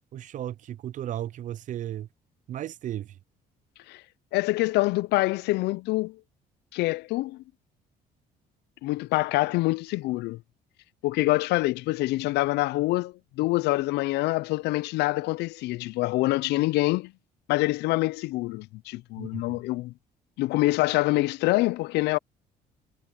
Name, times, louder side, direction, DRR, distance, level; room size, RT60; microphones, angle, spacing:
voice 1, 0.1-2.1 2.5-3.2 19.2-19.6, right 12 dB, 50° right, 0.4 m, -35 dB
voice 2, 4.3-6.2 6.7-7.4 8.8-10.4 11.0-17.1 17.5-19.9 20.4-22.2, left 20 dB, 80° left, 0.4 m, -25 dB
cardioid pair, 110°, 17 cm